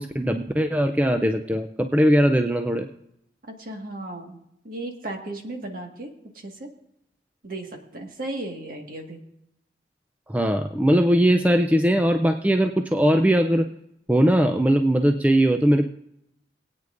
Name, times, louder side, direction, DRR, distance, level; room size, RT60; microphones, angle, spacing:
voice 1, 0.0-2.9 10.3-13.7 14.1-15.9, equal, 10° right, 5 dB, 0.4 m, -20 dB
voice 2, 3.4-6.7 7.4-9.2, right 2 dB, 50° right, 2 dB, 1.7 m, -36 dB
21.5 x 9.0 x 2.6 m, 0.79 s
head